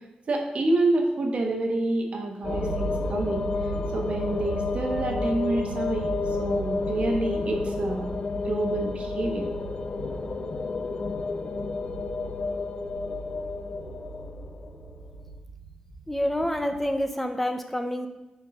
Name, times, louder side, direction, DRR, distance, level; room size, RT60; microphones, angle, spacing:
voice 1, 0.3-3.4 3.9-9.5, right 2 dB, 55° right, 1 dB, 1.3 m, -28 dB
sound 1, 2.4-14.9, left 4 dB, 45° left, 0.5 m, -31 dB
sound 2, 2.4-16.9, right 3 dB, 85° right, 1.4 m, -38 dB
voice 2, 16.1-18.1, equal, 5° left, 6 dB, 0.6 m, -27 dB
9.3 x 4.6 x 3.7 m, 1.1 s
wide cardioid pair, 145°, 3 cm